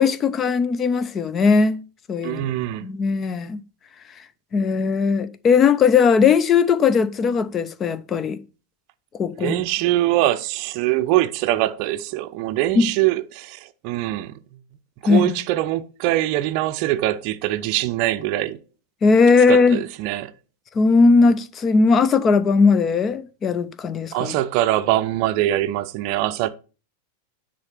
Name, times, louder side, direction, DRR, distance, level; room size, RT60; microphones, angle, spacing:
voice 1, 0.0-1.8 2.1-2.4 2.8-3.6 4.5-8.4 9.1-9.6 12.8-12.9 15.1-15.3 19.0-19.8 20.7-24.4, left 5 dB, 25° left, 0.7 m, -18 dB
voice 2, 2.2-2.9 9.4-14.3 15.0-18.6 19.5-20.3 24.1-26.5, right 15 dB, 45° right, 0.6 m, -23 dB
9.7 x 4.0 x 6.7 m
figure-of-eight pair, 90°, 0 cm